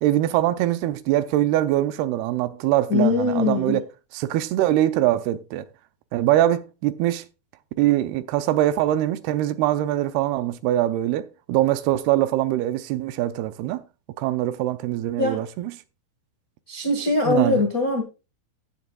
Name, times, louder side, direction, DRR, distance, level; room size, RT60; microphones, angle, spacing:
voice 1, 0.0-3.9 4.1-5.6 6.1-7.3 7.8-13.8 14.2-15.7 17.3-17.6, right 14 dB, 80° right, 2.5 m, -23 dB
voice 2, 2.9-3.8 15.2-15.4 16.7-18.0, left 3 dB, 75° left, 0.8 m, -22 dB
16.0 x 7.1 x 2.3 m
omnidirectional pair, 4.7 m